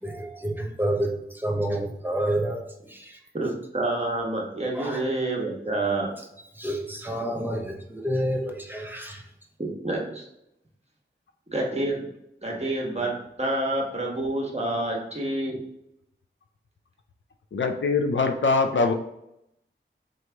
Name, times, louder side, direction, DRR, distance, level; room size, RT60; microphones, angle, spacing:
voice 1, 0.0-2.6 2.9-3.2 4.7-5.0 6.6-9.2, right 1 dB, 10° right, 1 dB, 0.8 m, -29 dB
voice 2, 3.3-6.1 9.6-10.3 11.5-12.0 12.4-15.6, right 2 dB, 30° right, -1 dB, 1.2 m, -28 dB
voice 3, 17.5-18.9, left 4 dB, 70° left, 6 dB, 0.5 m, -23 dB
3.8 x 3.1 x 3.4 m, 0.81 s
wide cardioid pair, 65°, 20 cm